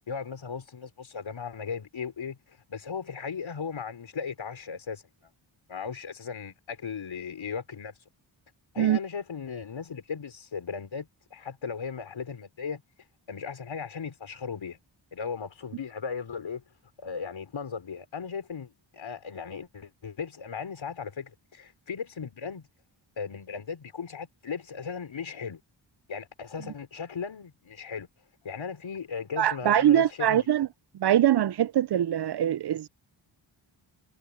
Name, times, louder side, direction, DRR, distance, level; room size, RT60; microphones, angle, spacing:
voice 1, 0.1-2.4 2.7-5.0 5.7-7.9 8.7-12.8 13.3-14.8 15.1-16.6 17.0-22.7 23.2-25.6 26.1-28.1 28.4-30.5, left 6 dB, 70° left, 4.4 m, -37 dB
voice 2, 29.4-30.7 31.0-32.9, right 11 dB, 55° right, 0.5 m, -23 dB
wide cardioid pair, 85°, 48 cm